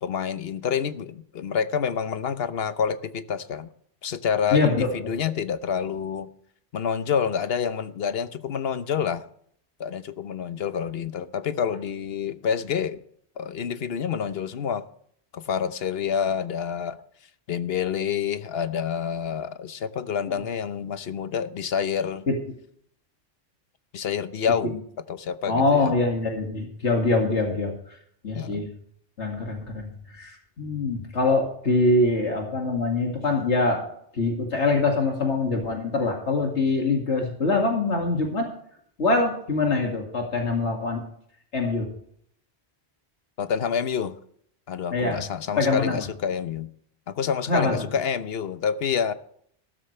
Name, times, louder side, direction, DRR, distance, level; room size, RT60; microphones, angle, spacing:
voice 1, 0.0-3.7 4.0-6.3 6.7-9.2 9.8-13.0 13.4-14.9 15.3-17.0 17.5-22.3 23.9-24.7 25.1-25.9 28.3-28.7 43.4-44.2 44.7-46.7 47.1-49.1, left 7 dB, 65° left, 1.1 m, -28 dB
voice 2, 4.5-5.1 22.3-22.4 24.6-24.7 25.5-27.7 28.2-28.7 29.2-33.9 34.1-38.5 39.0-41.0 41.5-41.9 44.9-45.2 45.6-46.0 47.5-47.7, left 3 dB, 85° left, 2.5 m, -24 dB
15.5 x 13.0 x 3.3 m
omnidirectional pair, 1.1 m